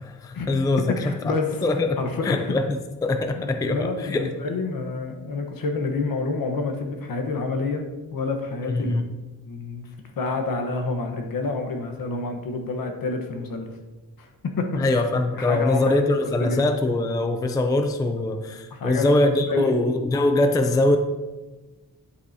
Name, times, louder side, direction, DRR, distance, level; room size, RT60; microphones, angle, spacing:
voice 1, 0.0-0.9 1.2-1.4 1.6-4.3 8.6-9.0 14.8-21.0, left 2 dB, 10° left, 7 dB, 0.4 m, -23 dB
voice 2, 0.9-1.6 2.0-2.5 3.4-7.8 8.1-8.9 9.5-9.8 10.2-13.7 14.2-15.0 15.4-16.0 16.4-16.6 18.7-19.1 19.5-19.8, left 3 dB, 65° left, 4 dB, 1.2 m, -28 dB
9.9 x 8.3 x 2.8 m, 1.2 s
wide cardioid pair, 175°, 36 cm